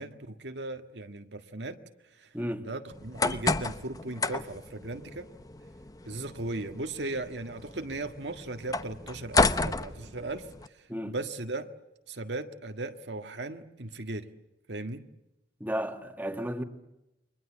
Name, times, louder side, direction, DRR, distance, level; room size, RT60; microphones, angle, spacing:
voice 1, 0.0-1.8 2.2-2.3 2.6-5.3 6.1-10.5 11.0-11.7 12.1-14.3 14.7-15.1, right 2 dB, 75° right, 1.7 m, -37 dB
voice 2, 2.3-2.7 10.9-11.1 15.6-16.6, equal, 10° right, 1.9 m, -33 dB
sound 1, 2.9-10.7, left 3 dB, 20° left, 0.9 m, -32 dB
29.5 x 24.0 x 7.4 m
head